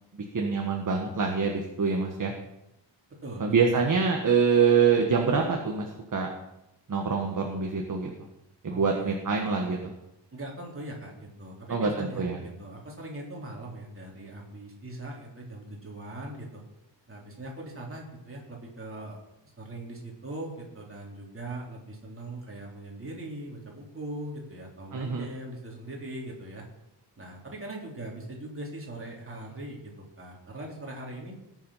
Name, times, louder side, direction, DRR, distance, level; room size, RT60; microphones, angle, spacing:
voice 1, 0.3-2.3 3.4-6.3 6.9-8.1 8.6-9.9 11.7-12.4 24.9-25.3, right 5 dB, 45° right, 2 dB, 1.6 m, -25 dB
voice 2, 3.2-3.8 8.7-9.1 10.3-16.6 17.1-19.2 19.6-26.6 27.2-29.9 30.2-31.4, right 1 dB, 30° right, -2 dB, 3.7 m, -40 dB
19.0 x 7.8 x 5.8 m, 0.89 s
wide cardioid pair, 160°, 44 cm